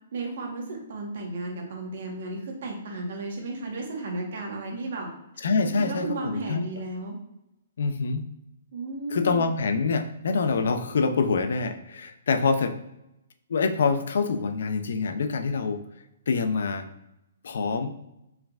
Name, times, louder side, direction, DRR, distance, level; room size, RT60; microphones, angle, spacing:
voice 1, 0.1-5.1 5.6-7.2 8.7-9.5, right 2 dB, 60° right, 0 dB, 1.1 m, -34 dB
voice 2, 5.4-6.6 7.8-8.2 9.1-12.8 13.5-15.8 16.3-16.9 17.4-17.9, left 4 dB, 70° left, 9 dB, 0.4 m, -25 dB
4.5 x 3.3 x 2.3 m, 0.87 s
hypercardioid pair, 165°, 0 cm